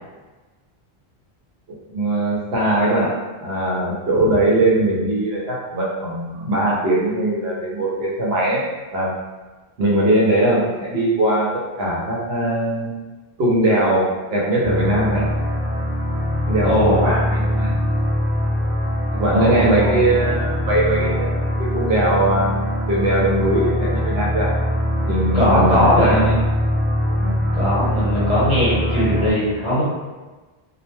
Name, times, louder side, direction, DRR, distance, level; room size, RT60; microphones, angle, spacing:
voice 1, 1.9-3.1 3.4-8.6 8.9-9.1 9.8-11.5 11.8-12.9 13.4-15.3 16.5-17.8 19.1-22.6 22.9-24.5 25.1-26.4 27.1-27.4, right 1 dB, 75° right, -5 dB, 0.9 m, -20 dB
sound 1, 14.6-29.3, left 1 dB, 10° right, 0.4 m, -22 dB
voice 2, 16.6-17.2 19.3-20.1 25.3-26.3 27.5-29.8, equal, 40° left, -9 dB, 0.8 m, -19 dB
2.3 x 2.1 x 3.1 m, 1.2 s
omnidirectional pair, 1.1 m